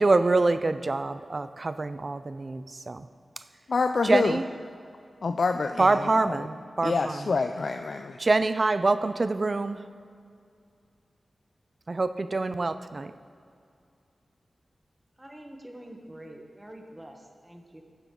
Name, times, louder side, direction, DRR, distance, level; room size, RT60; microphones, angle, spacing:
voice 1, 0.0-3.1 3.4-3.5 4.0-4.5 5.8-7.4 8.2-9.8 11.9-13.1, right 3 dB, 40° right, 12 dB, 0.4 m, -25 dB
voice 2, 3.7-4.4 5.2-5.9 6.3-6.4 6.8-8.2, left 4 dB, 65° left, 7 dB, 0.3 m, -26 dB
voice 3, 15.2-17.8, right 1 dB, 15° right, 3 dB, 1.1 m, -46 dB
15.5 x 6.9 x 3.8 m, 2.4 s
wide cardioid pair, 105°, 0 cm